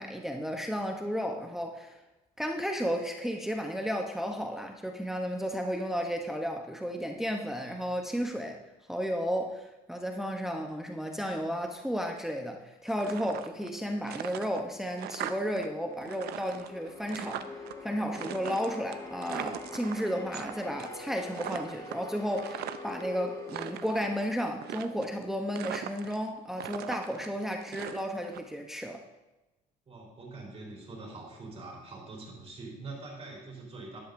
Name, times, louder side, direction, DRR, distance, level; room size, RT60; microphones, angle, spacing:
voice 1, 0.0-2.0 2.4-8.6 8.9-17.4 17.8-29.0, equal, ahead, 3 dB, 0.7 m, -33 dB
sound 1, 12.9-13.8 14.0-15.7 15.9-17.7 18.1-20.5 20.8-21.1 21.3-23.0 23.4-24.1 24.6-25.2 25.6-26.3 26.6-28.4, right 11 dB, 75° right, 0.6 m, -40 dB
sound 2, 15.1-25.4, left 2 dB, 20° left, 1.5 m, -45 dB
voice 2, 29.9-34.0, right 3 dB, 35° right, -2 dB, 3.7 m, -44 dB
12.0 x 10.5 x 2.6 m, 1.0 s
cardioid pair, 110°, 17 cm